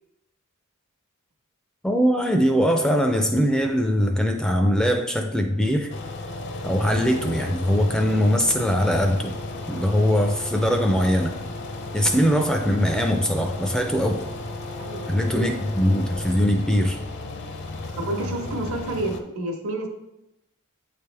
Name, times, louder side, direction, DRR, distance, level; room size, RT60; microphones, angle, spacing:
voice 1, 1.8-5.9 6.6-9.3 9.7-11.3 11.9-14.2 15.1-17.0, equal, 5° left, 4 dB, 0.4 m, -21 dB
sound 1, 5.9-19.2, left 2 dB, 55° left, 0.6 m, -34 dB
voice 2, 14.8-15.4 18.0-19.9, right 2 dB, 70° right, 2 dB, 1.0 m, -30 dB
8.5 x 3.4 x 3.3 m, 0.90 s
head